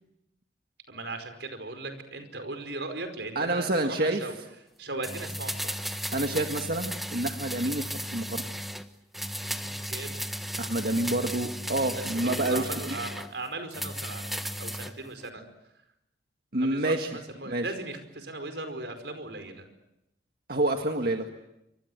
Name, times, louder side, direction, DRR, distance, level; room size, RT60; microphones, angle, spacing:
voice 1, 0.9-4.4 4.8-5.8 9.4-10.3 12.1-15.4 16.6-19.7, right 2 dB, 90° right, 8 dB, 5.0 m, -38 dB
voice 2, 3.4-4.2 6.1-8.4 10.6-13.0 16.5-17.1 17.4-17.6 20.5-21.3, right 1 dB, 60° right, 4 dB, 1.8 m, -28 dB
sound 1, 5.0-8.9 9.1-13.3 13.7-14.9 15.2-15.3, equal, ahead, 1.3 m, -35 dB
28.0 x 25.5 x 8.0 m, 0.86 s
head